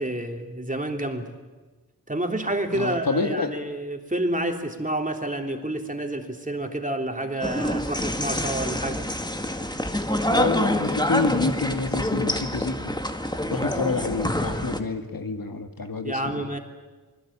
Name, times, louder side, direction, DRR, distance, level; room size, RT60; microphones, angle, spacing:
voice 1, 0.0-1.3 2.1-9.1 16.0-16.6, right 1 dB, 20° right, 3 dB, 3.4 m, -29 dB
voice 2, 2.7-3.5 10.3-12.9 13.5-16.6, left 3 dB, 75° left, 6 dB, 2.1 m, -28 dB
sound 1, 7.4-14.8, left 1 dB, 10° left, 1.9 m, -26 dB
28.5 x 21.0 x 8.8 m, 1.2 s
wide cardioid pair, 45°, 35 cm